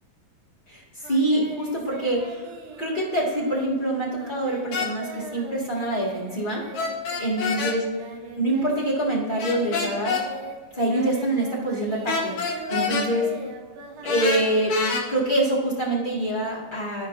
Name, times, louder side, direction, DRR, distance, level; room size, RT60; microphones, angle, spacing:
voice 1, 0.7-2.4 2.8-6.6 7.2-7.8 8.4-10.2 10.7-12.3 12.7-13.3 14.0-14.7 15.1-17.1, right 1 dB, 20° left, -7 dB, 1.7 m, -25 dB
Singing, 1.0-9.0 9.2-15.1, right 4 dB, 75° right, 2.2 m, -41 dB
sound 1, 4.7-4.9 6.7-7.8 9.4-10.2 12.1-13.1 14.0-15.0, left 4 dB, 65° left, 2.7 m, -26 dB
14.0 x 5.0 x 2.7 m, 1.5 s
omnidirectional pair, 3.8 m